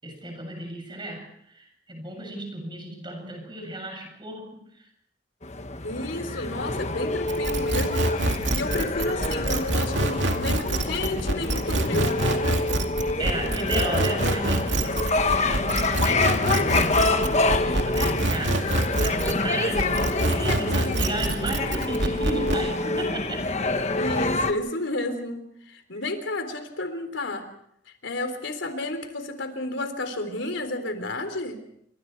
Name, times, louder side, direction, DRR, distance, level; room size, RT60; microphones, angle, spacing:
voice 1, 0.0-4.9 13.2-17.0 17.6-18.6 19.0-23.4, right 1 dB, 25° right, 3 dB, 7.6 m, -34 dB
sound 1, 5.4-24.5, left 2 dB, 35° left, 1.3 m, -27 dB
voice 2, 5.8-12.2 24.0-27.5 28.0-31.6, left 2 dB, 80° left, 7 dB, 3.6 m, -31 dB
sound 2, 7.3-19.4 19.8-22.6, right 1 dB, 75° right, 2.4 m, -26 dB
29.0 x 26.0 x 4.7 m, 0.73 s
head